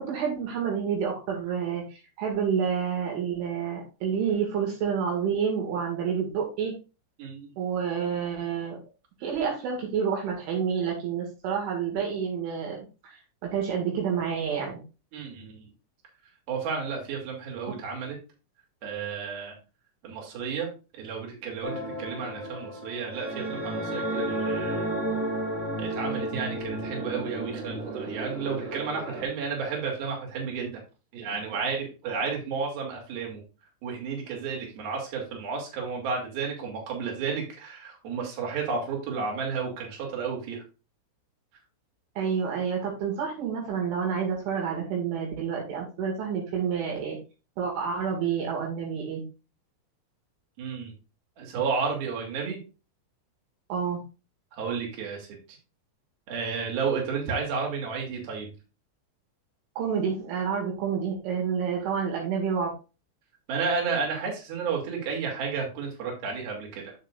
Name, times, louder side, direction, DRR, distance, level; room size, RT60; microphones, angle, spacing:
voice 1, 0.0-6.7 7.6-8.8 9.2-14.8 42.2-47.2 47.6-49.2 53.7-54.0 59.8-62.7, right 7 dB, 75° right, -1 dB, 4.3 m, -29 dB
voice 2, 7.2-7.5 15.1-15.7 16.5-18.2 18.8-19.6 20.0-20.7 20.9-25.0 25.8-30.8 31.1-33.4 33.8-40.6 50.6-50.9 51.4-52.6 54.5-55.3 56.3-58.5 63.5-66.9, right 5 dB, 55° right, 0 dB, 4.2 m, -32 dB
sound 1, 21.6-29.2, right 1 dB, 25° right, 2.0 m, -32 dB
8.2 x 7.9 x 2.5 m, 0.31 s
omnidirectional pair, 5.7 m